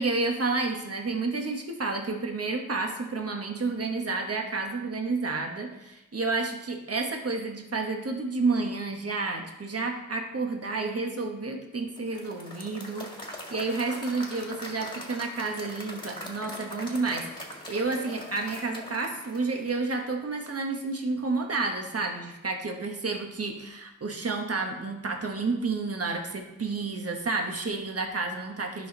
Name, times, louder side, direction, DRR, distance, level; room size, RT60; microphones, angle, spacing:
voice 1, 0.0-17.4 17.7-28.9, right 3 dB, 45° right, 3 dB, 1.3 m, -30 dB
Applause / Crowd, 12.0-20.1, equal, 15° left, 1.9 m, -42 dB
11.0 x 5.6 x 3.9 m, 0.95 s
wide cardioid pair, 60°, 34 cm